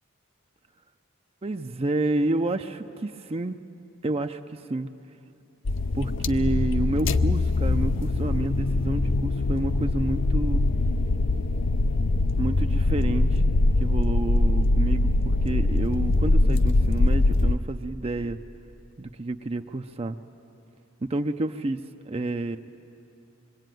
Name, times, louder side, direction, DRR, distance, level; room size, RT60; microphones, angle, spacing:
voice 1, 1.4-3.6 4.0-4.9 5.9-10.6 12.4-13.4 13.8-18.4 19.0-20.2 21.1-21.8 22.0-22.6, right 2 dB, 30° right, 7 dB, 0.5 m, -29 dB
sound 1, 5.6-17.6, left 2 dB, 65° left, 0.6 m, -23 dB
26.5 x 23.0 x 9.2 m, 2.8 s
head